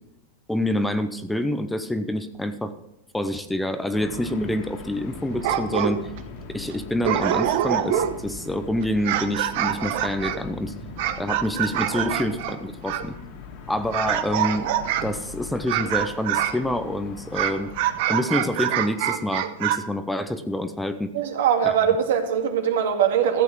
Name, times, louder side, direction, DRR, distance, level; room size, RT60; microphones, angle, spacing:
voice 1, 0.5-2.7 3.1-6.1 6.5-10.7 11.2-13.1 13.7-14.7 15.0-17.7 18.1-21.1 21.6-21.7, left 1 dB, 5° left, 9 dB, 0.7 m, -27 dB
sound 1, 3.9-18.0, left 5 dB, 50° left, 2.1 m, -40 dB
sound 2, 5.3-6.2 6.7-6.8 7.0-8.3 8.8-13.1 13.9-15.2 15.7-16.6 17.3-19.8, right 11 dB, 60° right, 1.0 m, -25 dB
voice 2, 21.1-23.4, right 8 dB, 75° right, 4 dB, 2.1 m, -21 dB
14.0 x 8.1 x 4.6 m, 0.81 s
supercardioid pair, 140°, 0 cm